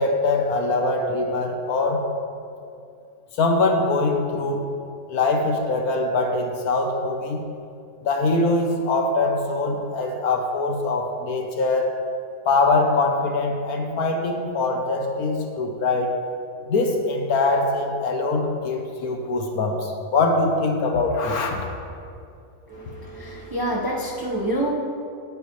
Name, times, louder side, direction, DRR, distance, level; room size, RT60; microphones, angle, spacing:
voice 1, 0.0-2.0 3.4-4.7 5.1-7.4 8.0-11.9 12.4-16.1 16.7-21.7, left 3 dB, 65° left, 3 dB, 1.3 m, -23 dB
voice 2, 22.7-24.7, right 1 dB, 15° right, -4 dB, 0.9 m, -27 dB
18.5 x 7.2 x 3.1 m, 2.5 s
omnidirectional pair, 1.8 m